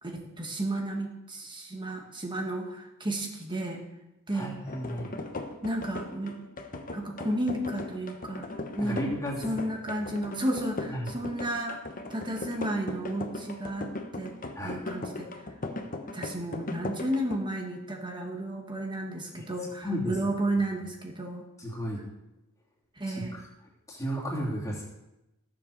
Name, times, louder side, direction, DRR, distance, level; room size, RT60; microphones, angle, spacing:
voice 1, 0.0-3.8 4.3-4.5 5.6-6.4 6.9-8.5 8.8-9.1 9.4-11.8 12.1-13.9 14.1-14.3 14.6-15.3 16.1-21.4 23.0-23.4, right 1 dB, 20° right, 2 dB, 1.6 m, -32 dB
voice 2, 4.3-5.1 8.8-9.3 10.9-11.1 14.5-14.8 19.3-19.4 19.8-20.1 21.6-22.0 23.1-23.4 23.9-24.8, equal, 15° left, -3 dB, 3.1 m, -33 dB
sound 1, 4.7-17.4, left 2 dB, 40° left, 1.1 m, -38 dB
14.5 x 7.5 x 6.7 m, 0.92 s
head